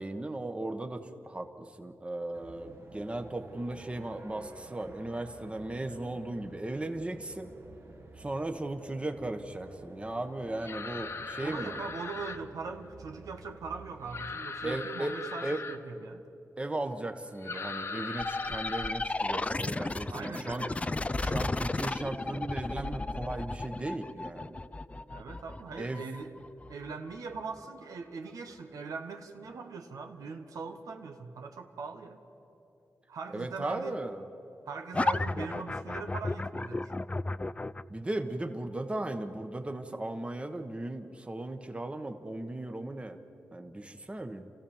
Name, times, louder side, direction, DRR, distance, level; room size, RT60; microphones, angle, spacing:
voice 1, 0.0-7.5 8.2-11.8 14.6-15.6 16.6-20.6 21.2-24.6 25.8-26.0 33.3-34.2 37.9-43.2 43.5-44.4, right 2 dB, 20° right, 7 dB, 1.2 m, -37 dB
sound 1, 2.3-14.5, right 3 dB, 45° right, 1.5 m, -51 dB
sound 2, 10.6-12.4 14.1-15.8 17.4-18.9, left 4 dB, 50° left, 1.1 m, -39 dB
voice 2, 11.4-16.2 20.1-20.9 25.1-26.3 26.7-32.2 33.1-34.0 34.6-37.1, right 5 dB, 85° right, 4 dB, 1.3 m, -41 dB
sound 3, 18.2-27.6 34.9-37.8, left 2 dB, 20° left, 0.4 m, -34 dB
28.0 x 15.0 x 7.2 m, 2.9 s
wide cardioid pair, 90°, 6 cm